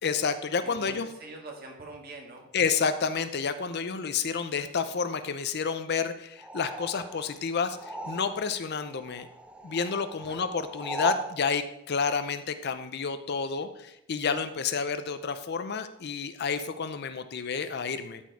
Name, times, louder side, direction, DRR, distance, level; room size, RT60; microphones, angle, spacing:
voice 1, 0.0-1.1 2.5-9.3 9.6-18.2, left 5 dB, 50° left, 11 dB, 0.5 m, -30 dB
voice 2, 0.6-2.5 10.1-10.4, right 2 dB, 45° right, 1 dB, 1.8 m, -44 dB
sound 1, 6.4-8.6 8.9-11.4, right 2 dB, 5° right, 0.6 m, -38 dB
12.5 x 4.5 x 4.6 m, 0.85 s
head